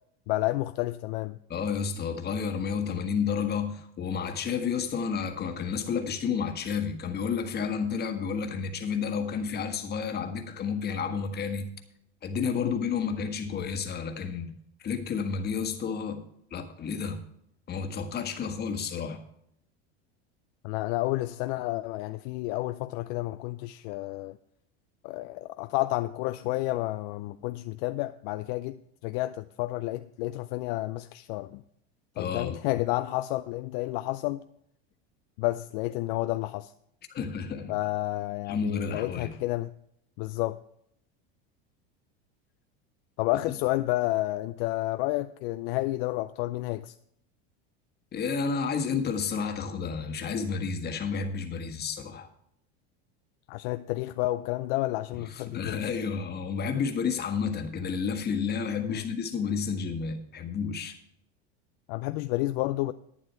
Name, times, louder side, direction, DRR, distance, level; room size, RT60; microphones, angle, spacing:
voice 1, 0.3-1.4 12.5-12.7 20.6-24.4 25.0-31.6 32.2-34.4 35.4-36.7 37.7-39.7 40.2-40.6 43.2-46.9 53.5-55.8 58.8-59.0 61.9-62.9, left 18 dB, 60° left, 0.5 m, -30 dB
voice 2, 1.5-11.7 12.2-14.5 14.8-16.2 16.5-17.2 17.7-19.2 32.1-32.6 37.1-37.8 38.5-39.3 48.1-52.3 55.3-61.0, left 6 dB, 30° left, 1.5 m, -31 dB
11.5 x 8.9 x 4.5 m
supercardioid pair, 125°, 32 cm